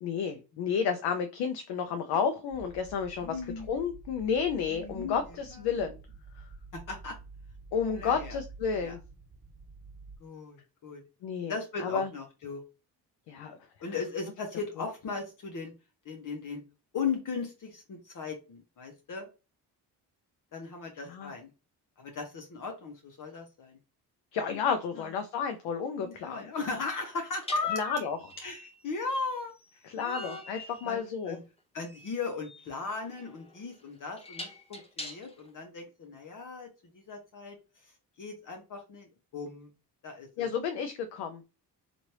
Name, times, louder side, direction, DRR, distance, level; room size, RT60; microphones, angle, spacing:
voice 1, 0.0-3.4 3.7-6.0 6.4-6.5 7.7-9.0 11.2-11.5 11.8-12.1 13.3-13.6 20.9-21.3 24.3-26.5 27.7-28.2 29.8-31.4 40.4-41.4, left 6 dB, 80° left, 6 dB, 0.6 m, -31 dB
sound 1, 2.5-10.2, right 4 dB, 15° right, 1.2 m, -49 dB
voice 2, 3.2-3.7 4.7-5.2 6.7-7.1 7.9-8.4 8.7-8.9 10.2-11.0 11.5-12.6 13.8-15.7 16.0-16.6 16.9-19.3 20.5-21.5 22.0-23.8 25.0-25.1 26.0-27.9 28.4-29.5 30.0-30.4 30.8-31.0 31.3-31.4 31.7-36.7 36.9-37.6 38.2-39.1 39.3-39.7 40.0-40.5, left 4 dB, 50° left, 3 dB, 0.8 m, -37 dB
sound 2, 25.0-25.2 27.4-35.5, left 1 dB, 15° left, 0.8 m, -46 dB
3.1 x 2.5 x 2.9 m, 0.30 s
cardioid pair, 75°, 40 cm